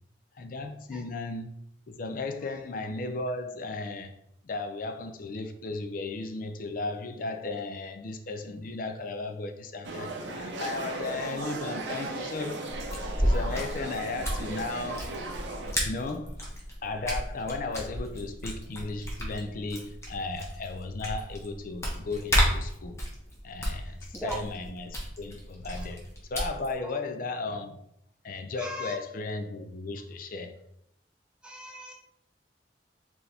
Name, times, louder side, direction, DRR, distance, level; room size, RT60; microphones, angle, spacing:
voice 1, 0.4-1.6 1.9-4.1 4.4-12.6 13.2-15.2 15.8-16.4 16.8-23.0 23.4-26.0 26.3-27.8 28.2-30.5, left 3 dB, 50° left, 0.4 m, -35 dB
sound 1, 9.8-15.7, right 2 dB, 90° right, 0.6 m, -36 dB
sound 2, 12.7-26.8, equal, 15° left, 0.9 m, -33 dB
voice 2, 23.9-24.4 26.8-27.0 28.6-29.0 31.4-31.9, right 1 dB, 5° right, 0.6 m, -39 dB
4.3 x 2.8 x 3.3 m
head